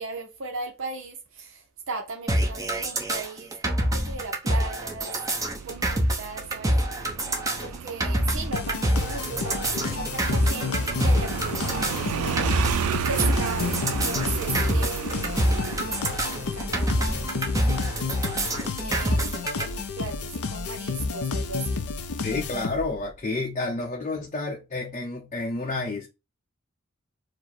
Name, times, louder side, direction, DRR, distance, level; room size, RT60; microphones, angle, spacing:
voice 1, 0.0-5.2 5.6-6.8 7.6-12.7 13.1-17.4 18.8-21.9, right 4 dB, 60° right, 0.7 m, -37 dB
sound 1, 2.3-19.6, right 1 dB, 15° right, 0.9 m, -26 dB
Motorcycle, 5.6-19.9, right 7 dB, 90° right, 0.4 m, -34 dB
sound 2, 8.5-23.1, left 4 dB, 90° left, 0.6 m, -31 dB
voice 2, 22.2-26.1, left 2 dB, 30° left, 0.7 m, -30 dB
4.9 x 2.1 x 4.2 m
head